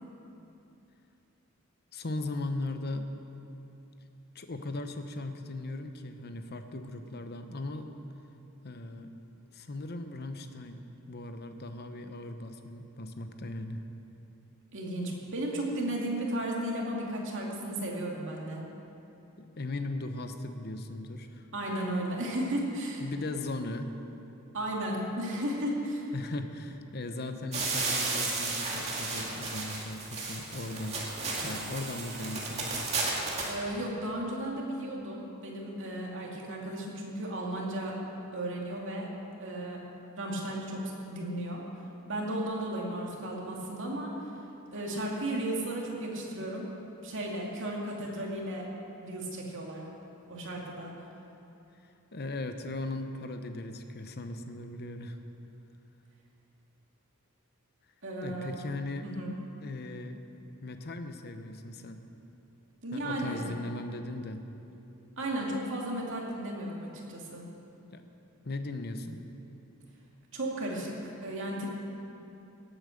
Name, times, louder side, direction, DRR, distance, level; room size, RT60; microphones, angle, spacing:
voice 1, 1.9-3.1 4.3-7.9 8.6-9.1 9.5-10.8 11.1-13.8 19.4-21.5 23.0-23.9 26.1-31.0 31.4-32.9 52.1-55.2 58.2-59.1 59.6-60.2 60.6-62.0 62.9-64.4 67.9-68.0 68.4-69.2, left 2 dB, 45° left, 7 dB, 0.9 m, -38 dB
voice 2, 14.7-18.6 21.5-23.0 24.5-26.1 33.4-38.0 38.3-39.1 39.4-39.8 40.2-41.6 42.1-44.1 44.7-46.7 47.0-48.7 49.0-49.8 50.3-50.9 58.0-58.6 59.0-59.3 62.8-63.5 65.2-67.4 70.3-71.7, right 1 dB, 55° right, -2 dB, 2.5 m, -34 dB
sound 1, 27.5-33.5, right 3 dB, 30° right, 2.3 m, -33 dB
18.0 x 8.8 x 6.6 m, 2.8 s
head